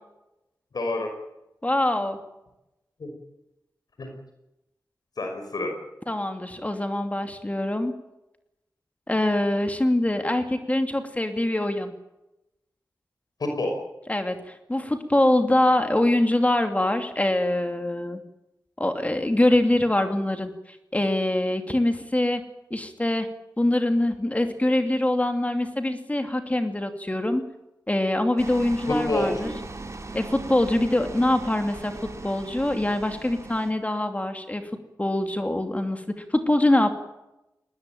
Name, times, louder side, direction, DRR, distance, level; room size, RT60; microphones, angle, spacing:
voice 1, 0.7-1.1 3.0-3.1 4.0-4.1 5.2-5.7 13.4-13.7 28.9-29.5, left 2 dB, 75° left, 4 dB, 5.4 m, -27 dB
voice 2, 1.6-2.2 6.1-7.9 9.1-11.9 14.1-18.2 18.8-22.4 22.7-23.3 23.6-27.4 27.9-29.5 30.1-31.9 32.2-34.6 35.0-36.0 36.3-36.9, left 1 dB, 20° left, 6 dB, 2.7 m, -24 dB
sound 1, 28.4-33.7, right 2 dB, 45° right, 3.8 m, -39 dB
21.0 x 19.5 x 9.3 m, 0.92 s
cardioid pair, 55°, 7 cm